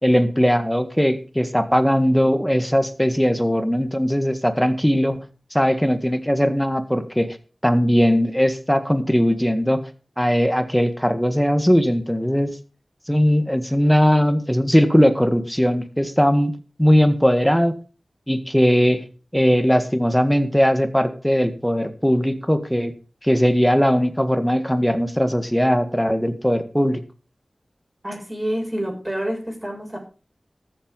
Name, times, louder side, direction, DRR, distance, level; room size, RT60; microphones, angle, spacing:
voice 1, 0.0-5.2 5.5-7.4 7.6-9.8 10.2-12.6 13.1-17.7 18.3-19.0 19.3-22.9 23.2-27.0, equal, 5° left, 9 dB, 1.7 m, -19 dB
voice 2, 28.0-30.0, right 1 dB, 15° right, 0 dB, 6.9 m, -28 dB
13.5 x 7.8 x 5.4 m, 0.37 s
wide cardioid pair, 50°, 0 cm